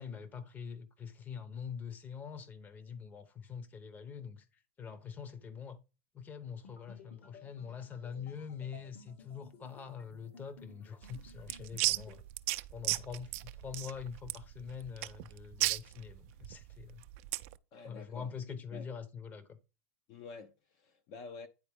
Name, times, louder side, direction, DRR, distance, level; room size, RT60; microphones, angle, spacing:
voice 1, 0.0-4.4 4.8-5.8 6.1-12.2 12.7-17.0 17.9-19.6, left 7 dB, 20° left, 0.9 m, -44 dB
sound 1, 6.6-12.2, left 3 dB, 65° left, 1.9 m, -57 dB
sound 2, 11.0-17.5, right 20 dB, 55° right, 0.4 m, -36 dB
voice 2, 17.7-18.3 18.7-18.9 20.1-21.5, left 4 dB, 45° left, 0.8 m, -48 dB
9.5 x 4.1 x 3.4 m
supercardioid pair, 135°, 8 cm